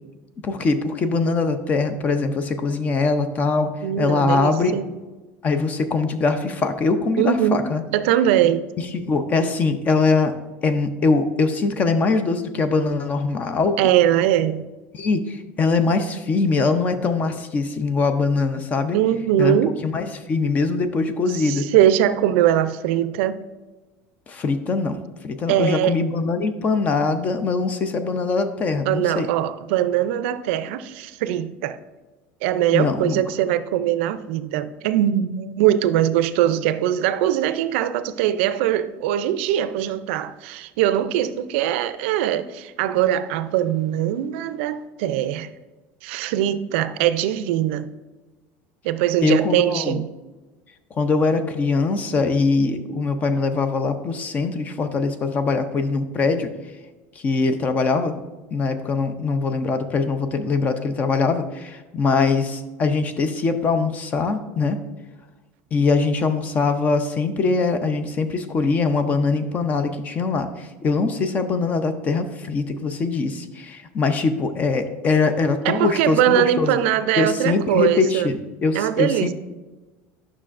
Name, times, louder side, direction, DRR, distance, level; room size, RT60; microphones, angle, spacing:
voice 1, 0.4-3.7 4.0-4.7 5.4-7.8 8.9-10.3 10.6-13.7 14.9-19.0 19.4-19.6 19.8-21.6 24.3-25.0 25.2-29.3 32.7-33.2 49.2-50.0 51.0-56.5 57.2-58.2 58.5-64.8 65.7-76.8 77.2-79.3, left 4 dB, 25° left, 0.4 m, -22 dB
voice 2, 3.8-4.9 7.2-7.6 7.9-8.6 13.8-14.7 18.9-19.8 21.3-23.4 25.5-26.0 28.9-31.8 32.4-45.5 46.0-47.9 48.8-50.1 75.6-78.3 78.7-79.3, right 11 dB, 80° right, 0.4 m, -21 dB
9.8 x 6.0 x 2.5 m
cardioid pair, 165°, 6 cm